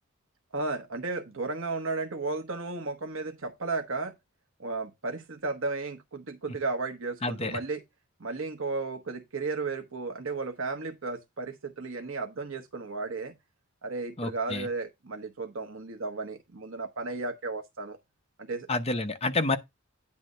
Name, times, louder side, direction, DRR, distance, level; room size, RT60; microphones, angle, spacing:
voice 1, 0.5-4.1 4.6-7.8 8.2-13.3 13.8-18.0 18.4-18.7, right 3 dB, 65° right, 1.1 m, -34 dB
voice 2, 7.2-7.6 14.2-14.7 18.7-19.6, left 2 dB, 30° left, 0.8 m, -29 dB
9.6 x 3.3 x 6.4 m
head